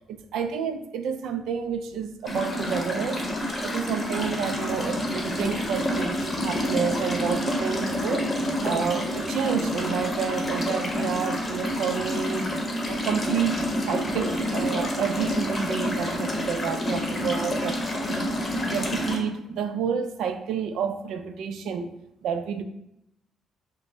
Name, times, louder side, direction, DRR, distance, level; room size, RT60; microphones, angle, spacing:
voice 1, 0.1-3.2 3.6-8.3 8.6-12.5 12.8-18.3 18.7-21.9 22.2-22.6, right 7 dB, 80° right, 8 dB, 0.3 m, -29 dB
sound 1, 2.3-19.2, left 1 dB, 25° left, 0.9 m, -28 dB
5.1 x 2.0 x 3.3 m, 0.83 s
cardioid pair, 90°, 0 cm